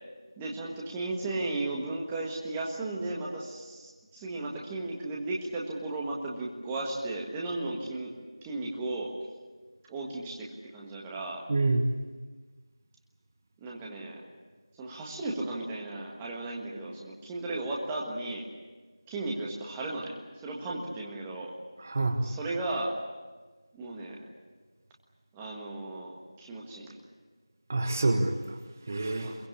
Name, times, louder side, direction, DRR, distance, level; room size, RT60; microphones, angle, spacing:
voice 1, 0.4-8.1 8.4-9.1 9.9-11.4 13.6-14.2 14.8-18.4 19.1-21.5 22.2-22.9 23.7-24.2 25.3-26.9 29.2-29.4, right 2 dB, 10° right, -3 dB, 1.6 m, -35 dB
voice 2, 11.5-11.9 21.8-22.3 27.7-28.5 28.9-29.3, right 2 dB, 30° right, 6 dB, 1.4 m, -27 dB
24.0 x 22.5 x 8.6 m, 1.3 s
figure-of-eight pair, 175°, 3 cm